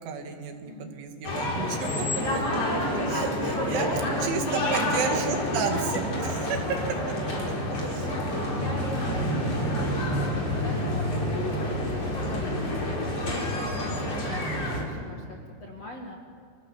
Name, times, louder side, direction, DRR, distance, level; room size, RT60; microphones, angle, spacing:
voice 1, 0.0-1.9 3.1-6.6 7.9-8.1, right 5 dB, 75° right, 4 dB, 4.5 m, -32 dB
sound 1, 1.2-14.8, left 1 dB, 30° left, 4.9 m, -28 dB
voice 2, 1.6-2.4 3.4-3.6 4.0-5.8 7.2-7.5 7.8-12.4 12.8-16.2, left 1 dB, 45° left, 0 dB, 2.3 m, -42 dB
30.0 x 26.0 x 7.3 m, 2.1 s
omnidirectional pair, 5.6 m